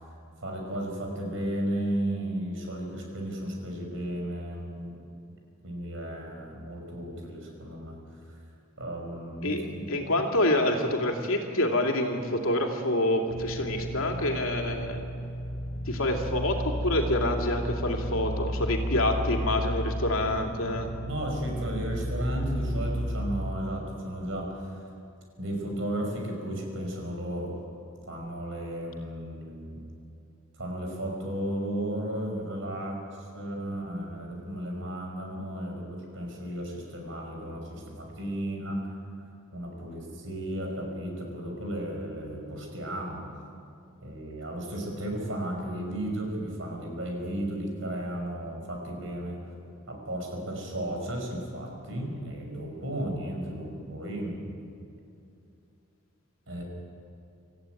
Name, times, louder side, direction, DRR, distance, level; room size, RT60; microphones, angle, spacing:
voice 1, 0.4-5.0 5.6-8.0 8.3-8.4 8.8-9.8 21.1-24.9 25.4-27.6 28.1-29.8 30.6-38.8 39.5-43.3 44.0-49.4 49.9-54.4 56.5-56.6, right 1 dB, 65° right, 1 dB, 5.8 m, -34 dB
voice 2, 9.4-15.0 15.9-20.9, left 1 dB, 80° left, 2 dB, 2.8 m, -27 dB
sound 1, 13.3-23.5, equal, 50° left, 1.7 m, -33 dB
26.5 x 14.5 x 9.3 m, 2.6 s
head